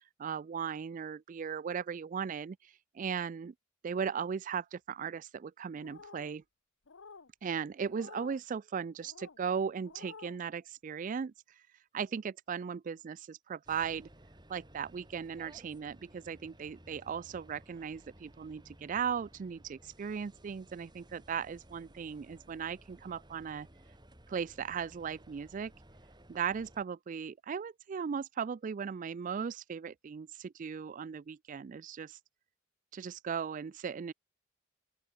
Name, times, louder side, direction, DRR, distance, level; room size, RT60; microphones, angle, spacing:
voice 1, 0.2-3.5 3.8-6.4 7.4-11.6 11.9-14.1 14.5-23.7 24.3-25.7 26.3-32.2 32.9-34.1, right 6 dB, 40° right, 0.3 m, -37 dB
sound 1, 5.8-6.4 6.9-7.3 7.9-8.4 9.0-9.4 9.8-10.4, left 4 dB, 85° left, 1.0 m, -51 dB
sound 2, 13.7-26.9, right 1 dB, 20° right, 7.5 m, -58 dB
open air
head